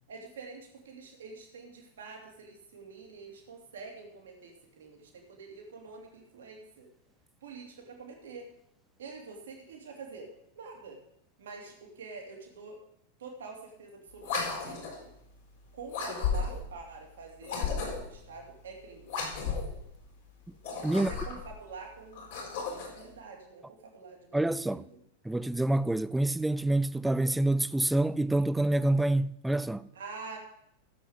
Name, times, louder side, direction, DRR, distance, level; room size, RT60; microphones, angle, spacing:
voice 1, 0.1-6.9 7.4-8.5 9.0-11.0 11.4-12.8 13.2-14.8 15.7-19.1 20.9-25.0 29.9-30.4, right 4 dB, 65° right, 2.7 m, -46 dB
sound 1, 14.2-15.0 15.9-16.7 17.4-18.2 19.0-19.8 20.5-21.5 22.1-23.0, left 5 dB, 55° left, 4.1 m, -34 dB
voice 2, 24.3-24.8 25.2-29.9, right 2 dB, 5° right, 0.4 m, -27 dB
15.0 x 7.8 x 5.2 m
figure-of-eight pair, 90°, 0 cm